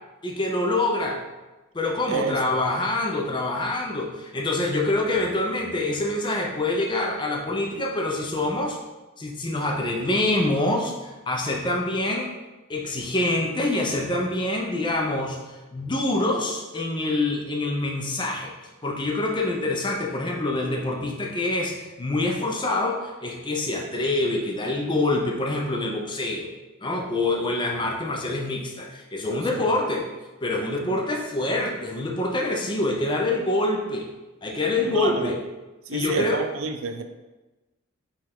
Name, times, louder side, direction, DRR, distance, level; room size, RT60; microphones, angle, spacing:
voice 1, 0.2-1.2 1.7-8.8 9.2-12.3 12.7-18.5 18.8-26.5 26.8-30.1 30.4-34.1 34.4-35.4 35.9-36.4, left 2 dB, 20° left, 0 dB, 0.5 m, -26 dB
voice 2, 2.1-2.4 29.5-29.7 34.8-35.3 35.9-37.0, right 4 dB, 75° right, 7 dB, 0.4 m, -28 dB
5.3 x 2.3 x 3.5 m, 1.1 s
head